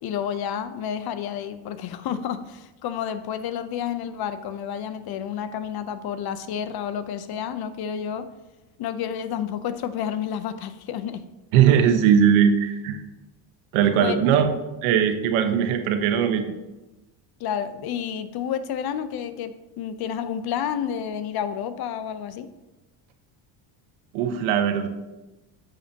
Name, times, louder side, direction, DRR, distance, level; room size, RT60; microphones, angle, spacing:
voice 1, 0.0-8.3 8.8-11.2 14.0-14.2 17.4-22.5, left 9 dB, 50° left, 12 dB, 0.7 m, -30 dB
voice 2, 11.5-13.0 13.7-14.5 14.8-16.5 24.1-24.9, right 8 dB, 85° right, 6 dB, 1.2 m, -19 dB
10.5 x 7.7 x 2.8 m, 1.1 s
cardioid pair, 130°, 48 cm